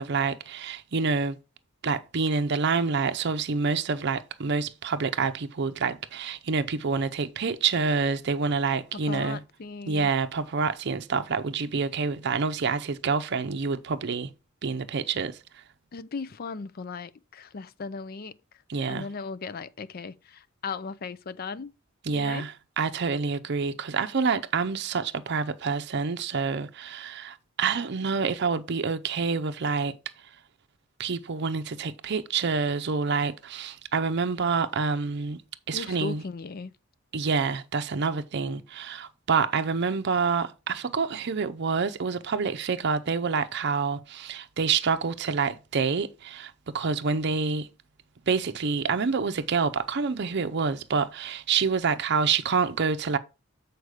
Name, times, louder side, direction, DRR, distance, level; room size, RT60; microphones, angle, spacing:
voice 1, 0.0-1.4 1.8-9.4 9.9-14.3 14.6-15.4 18.7-19.1 22.0-29.9 31.0-35.4 35.7-36.2 37.1-47.7 48.3-53.2, right 5 dB, 55° right, 0.6 m, -27 dB
voice 2, 8.9-10.1 15.9-18.4 18.9-21.7 22.1-22.5 35.7-36.7, left 4 dB, 45° left, 0.5 m, -37 dB
8.0 x 4.6 x 4.9 m
head